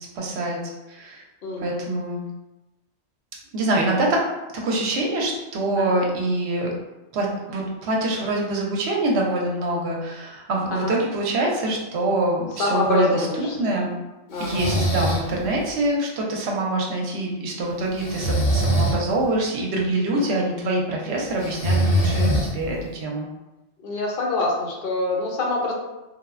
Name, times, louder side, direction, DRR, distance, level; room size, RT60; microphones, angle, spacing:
voice 1, 0.1-1.2 1.6-2.2 3.5-4.3 4.6-6.7 7.1-14.0 14.4-23.3, right 1 dB, 65° right, -1 dB, 0.8 m, -25 dB
voice 2, 1.4-1.9 5.8-6.0 10.7-11.0 12.6-13.8 14.3-14.7 20.1-20.5 23.8-25.7, left 2 dB, 60° left, -1 dB, 0.6 m, -26 dB
Breathing, 14.3-15.3 18.0-19.0 21.4-22.8, right 1 dB, 85° left, 1.1 m, -22 dB
3.2 x 2.0 x 2.4 m, 1.0 s
omnidirectional pair, 1.3 m